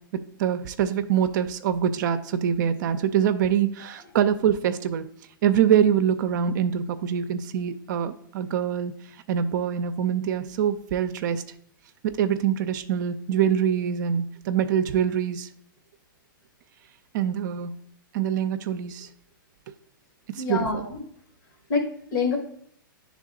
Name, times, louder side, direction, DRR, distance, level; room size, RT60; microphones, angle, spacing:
voice 1, 0.1-5.0 5.4-8.9 9.3-11.4 12.0-15.5 17.1-17.7 18.1-19.1 20.3-20.8, right 9 dB, 60° right, 9 dB, 0.5 m, -24 dB
voice 2, 20.4-21.0 21.7-22.4, left 4 dB, 60° left, 0 dB, 1.5 m, -27 dB
9.9 x 3.5 x 3.7 m, 0.67 s
hypercardioid pair, 120°, 11 cm